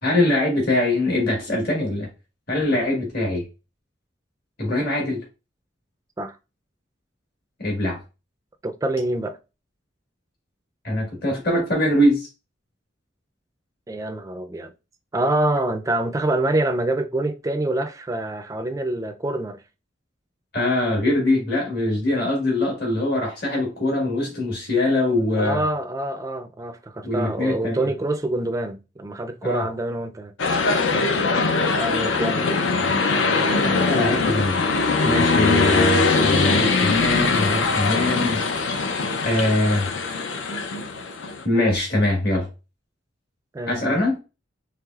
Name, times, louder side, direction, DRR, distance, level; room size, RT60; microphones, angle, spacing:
voice 1, 0.0-2.1 2.5-3.4 4.6-5.2 7.6-8.0 10.8-12.3 20.5-25.6 27.0-27.8 29.4-29.7 33.6-34.6 35.0-38.4 39.2-39.9 41.4-42.5 43.7-44.1, left 1 dB, 55° left, 1.6 m, -22 dB
voice 2, 8.6-9.4 13.9-14.7 15.1-19.6 25.4-30.3 31.8-32.6 43.5-44.0, right 1 dB, 15° right, 0.3 m, -26 dB
sound 1, 30.4-41.4, left 4 dB, 80° left, 0.6 m, -21 dB
4.8 x 3.0 x 2.3 m
head